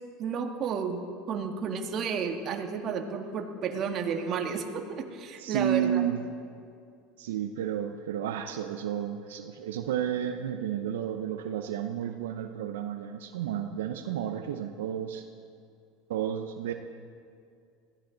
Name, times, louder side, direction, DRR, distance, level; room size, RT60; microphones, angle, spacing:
voice 1, 0.2-6.0, right 6 dB, 45° right, 3 dB, 1.9 m, -32 dB
voice 2, 5.4-6.3 7.2-15.2 16.1-16.7, right 10 dB, 85° right, 6 dB, 0.7 m, -32 dB
21.0 x 15.0 x 4.0 m, 2.3 s
hypercardioid pair, 95°, 0 cm